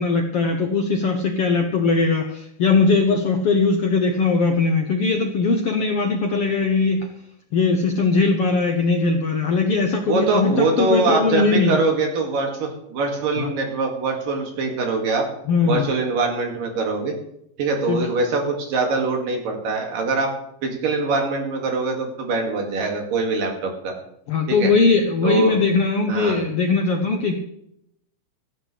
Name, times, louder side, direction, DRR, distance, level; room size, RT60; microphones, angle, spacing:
voice 1, 0.0-7.1 7.5-11.8 13.4-13.5 15.5-15.9 17.9-18.1 24.3-27.4, left 4 dB, 70° left, 4 dB, 1.4 m, -20 dB
voice 2, 10.0-15.2 15.7-17.1 17.6-20.3 20.6-23.9 24.5-24.7 25.2-25.6 26.1-26.4, right 3 dB, 75° right, 2 dB, 3.8 m, -23 dB
16.5 x 14.5 x 3.3 m, 0.75 s
omnidirectional pair, 4.0 m